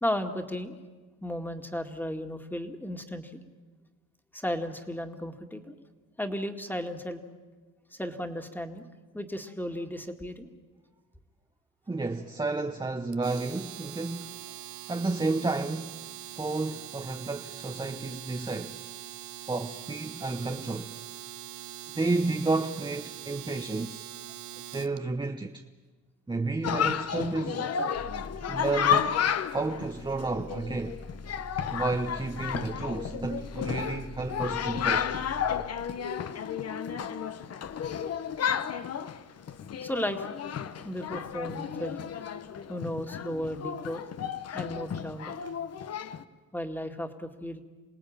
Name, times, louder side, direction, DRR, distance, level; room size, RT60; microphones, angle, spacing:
voice 1, 0.0-0.8 1.2-3.3 4.3-5.8 6.2-7.2 7.9-8.9 9.1-10.5 39.8-40.3 40.8-42.1 42.7-44.1 44.5-45.3 46.5-47.6, left 1 dB, 5° left, 2.1 m, -34 dB
voice 2, 11.9-14.4 14.9-16.1 16.3-18.8 19.5-20.9 21.9-24.1 24.7-25.6 26.3-27.7 28.5-29.2 29.5-31.1 31.7-35.1, right 3 dB, 15° right, 1.0 m, -31 dB
Domestic sounds home sounds, 13.1-25.0, right 12 dB, 75° right, 0.8 m, -43 dB
Chatter, 26.6-46.2, left 8 dB, 55° left, 1.1 m, -32 dB
sound 1, 27.9-35.7, left 2 dB, 85° left, 2.2 m, -45 dB
27.5 x 18.5 x 8.9 m
cardioid pair, 90°, 30 cm